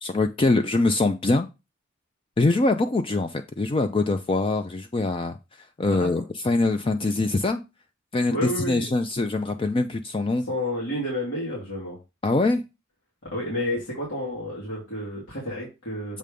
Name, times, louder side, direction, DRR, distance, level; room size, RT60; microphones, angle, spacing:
voice 1, 0.0-1.5 2.4-5.4 5.8-7.6 8.1-8.4 8.7-10.4 12.2-12.6, left 2 dB, 25° left, 8 dB, 0.4 m, -23 dB
voice 2, 8.3-8.9 10.5-12.0 13.3-16.2, left 1 dB, 90° left, -5 dB, 2.7 m, -30 dB
7.5 x 3.5 x 5.2 m, 0.26 s
head